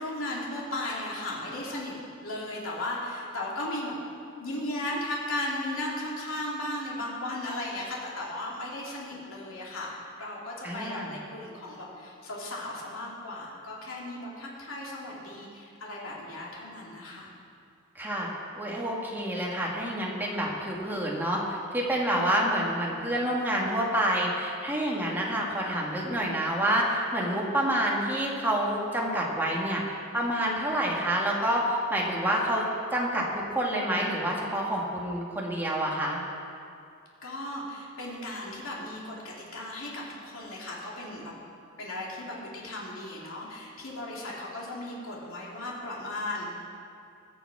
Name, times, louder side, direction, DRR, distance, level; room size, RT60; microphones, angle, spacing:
voice 1, 0.0-2.0 2.2-4.0 4.4-9.9 10.2-17.3 37.2-41.3 41.8-46.5, left 1 dB, 80° left, -4 dB, 2.9 m, -36 dB
voice 2, 10.6-11.1 18.0-18.3 18.6-32.7 32.9-36.2, right 1 dB, 10° right, -3 dB, 1.9 m, -28 dB
21.0 x 7.1 x 4.9 m, 2.4 s
head